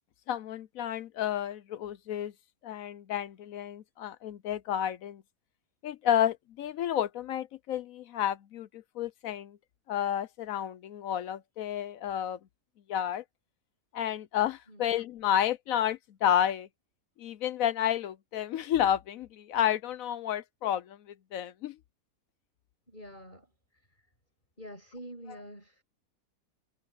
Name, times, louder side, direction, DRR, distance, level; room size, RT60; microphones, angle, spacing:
voice 1, 0.3-2.3 2.6-5.2 5.8-9.6 9.9-12.4 12.9-13.2 13.9-16.7 17.2-21.0 21.3-21.8, left 10 dB, 65° left, 0.9 m, -31 dB
voice 2, 22.9-24.1 24.6-25.8, equal, 30° left, 6.7 m, -47 dB
omnidirectional pair, 1.7 m